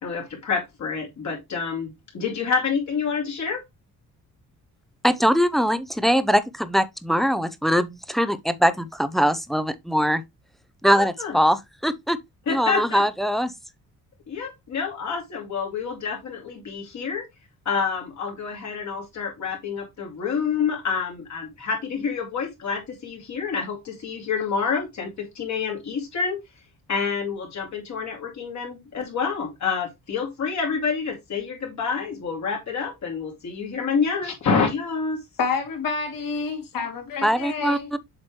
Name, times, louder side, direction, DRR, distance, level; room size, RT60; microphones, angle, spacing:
voice 1, 0.0-3.6 10.9-11.4 12.5-13.0 14.3-17.3 17.7-26.4 26.9-35.2, left 5 dB, 50° left, 2.3 m, -28 dB
voice 2, 5.0-10.2 10.8-12.2 12.5-13.5 37.2-38.0, equal, ahead, 0.5 m, -22 dB
voice 3, 35.4-37.9, left 5 dB, 65° left, 2.7 m, -28 dB
7.5 x 4.7 x 3.1 m
cardioid pair, 145°, 35 cm